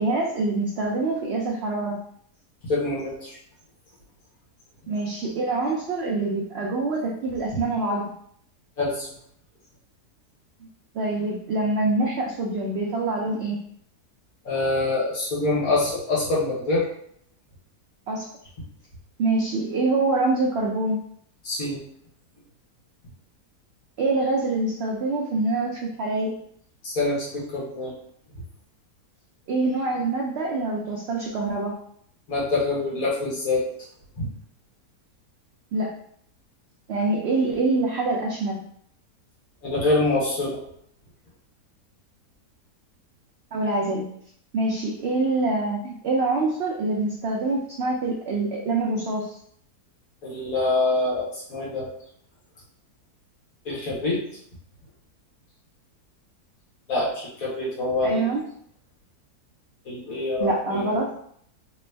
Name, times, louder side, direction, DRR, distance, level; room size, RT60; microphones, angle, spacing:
voice 1, 0.0-2.0 4.9-8.1 10.9-13.6 18.1-18.3 19.2-21.0 24.0-26.4 29.5-31.8 35.7-35.9 36.9-38.6 43.5-44.1 44.5-49.4 58.0-58.4 60.4-61.1, right 2 dB, 80° right, -1 dB, 0.5 m, -25 dB
voice 2, 2.6-3.4 7.5-7.6 8.8-9.1 14.5-16.9 21.4-21.8 26.8-27.9 32.3-33.6 34.2-34.3 39.6-40.6 50.2-51.9 53.7-54.2 56.9-58.3 59.9-60.9, left 2 dB, 60° left, -6 dB, 1.8 m, -25 dB
3.4 x 3.0 x 3.3 m, 0.66 s
omnidirectional pair, 1.7 m